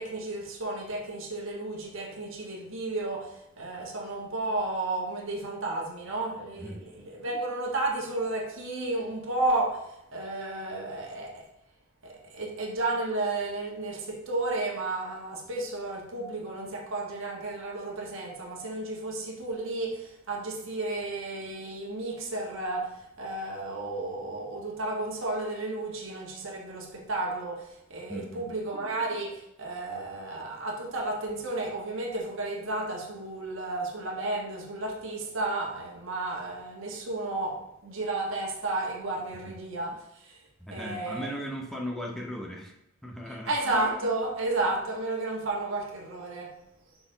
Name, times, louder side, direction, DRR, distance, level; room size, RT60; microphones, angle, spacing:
voice 1, 0.0-11.5 12.0-40.4 40.7-41.3 43.5-46.6, right 2 dB, 65° right, 1.4 m, -32 dB
voice 2, 6.6-6.9 28.1-28.5 40.6-42.7 43.0-43.5, equal, ahead, 0.8 m, -37 dB
6.0 x 4.1 x 3.9 m
head